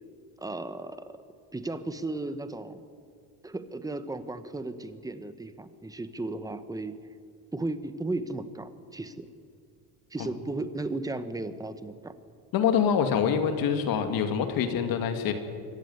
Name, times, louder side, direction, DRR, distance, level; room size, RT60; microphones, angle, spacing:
voice 1, 0.4-1.2 1.5-2.8 3.4-7.0 7.5-9.3 10.1-12.1, right 2 dB, 10° right, 11 dB, 1.2 m, -35 dB
voice 2, 12.5-15.3, left 7 dB, 60° left, 7 dB, 2.5 m, -25 dB
25.0 x 15.0 x 9.7 m, 2.3 s
cardioid pair, 135°, 39 cm